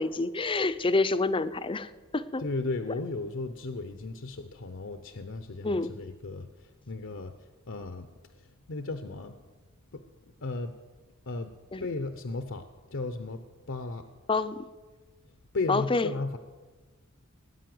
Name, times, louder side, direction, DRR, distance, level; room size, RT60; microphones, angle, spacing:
voice 1, 0.0-2.4 5.6-5.9 11.7-11.8 14.3-14.6 15.7-16.1, left 3 dB, 25° left, 13 dB, 0.6 m, -27 dB
voice 2, 2.4-8.1 8.3-9.4 9.9-10.0 10.4-10.7 11.3-11.5 11.8-14.1 15.5-16.4, left 3 dB, 60° left, 8 dB, 0.8 m, -35 dB
18.0 x 9.9 x 7.8 m, 1.3 s
head